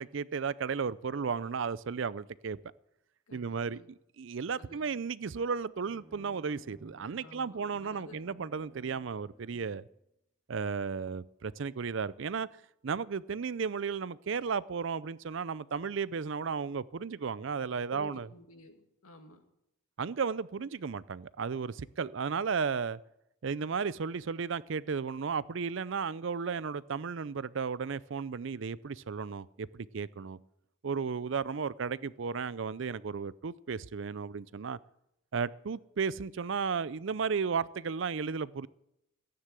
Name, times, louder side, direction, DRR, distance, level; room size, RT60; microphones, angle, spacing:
voice 1, 0.0-2.6 3.3-3.8 4.2-9.8 10.5-12.5 12.8-18.3 20.0-23.0 23.4-30.4 30.8-34.8 35.3-38.7, right 5 dB, 60° right, 0.5 m, -34 dB
voice 2, 3.3-3.9 4.6-5.0 7.2-8.2 9.5-9.7 17.9-19.4, left 3 dB, 85° left, 2.1 m, -52 dB
Bowed string instrument, 5.7-10.0, right 1 dB, 15° right, 0.6 m, -58 dB
15.0 x 9.7 x 7.6 m
head